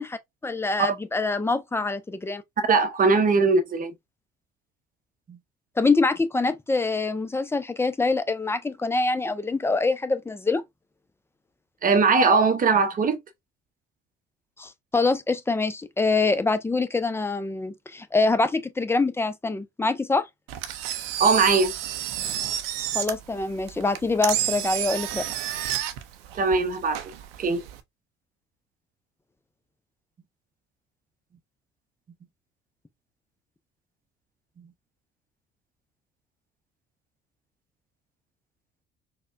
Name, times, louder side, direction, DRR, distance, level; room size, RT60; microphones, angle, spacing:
voice 1, 0.0-2.4 5.8-10.6 14.6-20.3 22.9-25.3, left 3 dB, 10° left, 0.4 m, -25 dB
voice 2, 2.7-3.9 5.3-5.4 11.8-13.2 21.2-21.7 26.3-27.1 27.4-27.6 34.6-34.7, right 4 dB, 25° right, 0.8 m, -20 dB
Engine, 20.5-27.8, right 11 dB, 70° right, 0.6 m, -31 dB
4.2 x 2.2 x 2.5 m
figure-of-eight pair, 55°, 31 cm